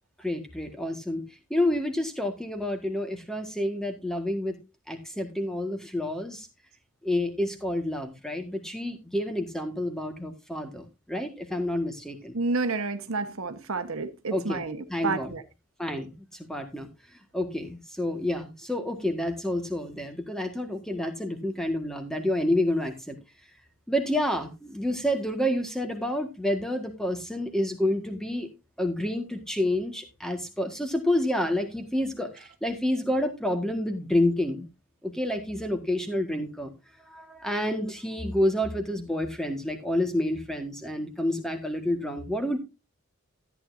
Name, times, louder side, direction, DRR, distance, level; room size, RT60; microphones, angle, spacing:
voice 1, 0.2-1.2 1.5-4.6 4.9-6.5 7.0-12.4 14.3-14.6 14.9-15.3 15.8-16.1 16.5-16.9 17.3-23.2 23.9-28.5 28.8-34.7 35.0-36.7 37.1-42.6, left 1 dB, ahead, 1.6 m, -29 dB
voice 2, 12.3-15.4, right 3 dB, 70° right, 1.2 m, -30 dB
13.5 x 9.3 x 2.6 m
head